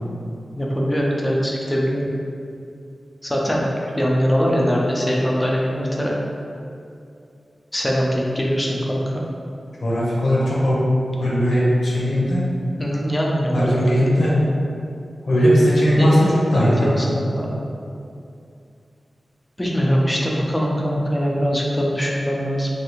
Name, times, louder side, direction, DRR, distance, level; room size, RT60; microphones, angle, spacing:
voice 1, 0.5-2.1 3.2-3.7 4.0-6.2 7.7-9.0 12.8-14.4 16.0-17.5 19.6-22.7, equal, 10° left, -3 dB, 0.4 m, -22 dB
voice 2, 9.8-10.8 11.2-12.4 13.5-14.3 15.2-16.9, equal, 85° left, -7 dB, 0.8 m, -18 dB
3.3 x 2.4 x 3.0 m, 2.5 s
wide cardioid pair, 120°, 0 cm